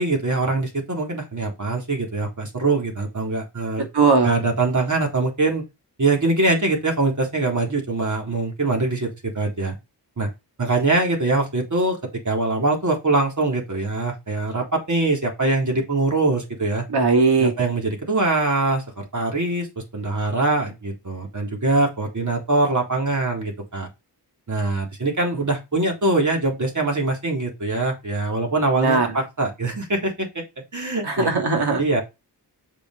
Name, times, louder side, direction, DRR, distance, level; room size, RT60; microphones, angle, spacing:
voice 1, 0.0-3.9 4.2-5.6 6.0-9.7 10.2-10.3 10.6-12.0 12.2-16.8 17.4-19.7 19.9-23.9 24.5-30.4 30.7-31.3 31.8-32.0, right 2 dB, 45° right, 2 dB, 3.7 m, -23 dB
voice 2, 3.9-4.3 16.9-17.5 28.8-29.1 31.0-31.8, right 4 dB, 65° right, 2 dB, 2.7 m, -18 dB
7.2 x 5.3 x 5.1 m, 0.24 s
cardioid pair, 50°, 42 cm